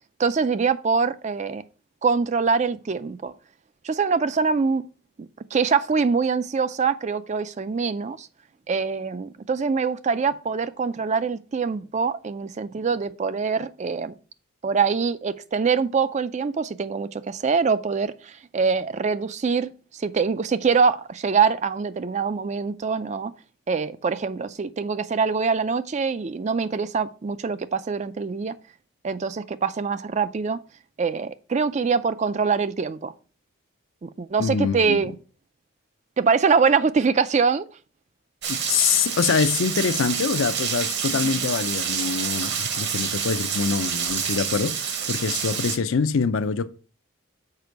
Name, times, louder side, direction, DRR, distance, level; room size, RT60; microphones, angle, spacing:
voice 1, 0.2-1.6 2.0-3.3 3.8-4.9 5.2-8.3 8.7-14.1 14.6-23.3 23.7-28.6 29.0-30.6 31.0-33.1 34.0-35.1 36.2-37.6 41.2-41.5, right 5 dB, 35° right, 0.3 m, -24 dB
voice 2, 34.4-35.0 38.5-46.7, left 6 dB, 70° left, 0.5 m, -25 dB
Rain, 38.4-45.8, right 7 dB, 55° right, 1.0 m, -27 dB
6.8 x 5.1 x 4.5 m
head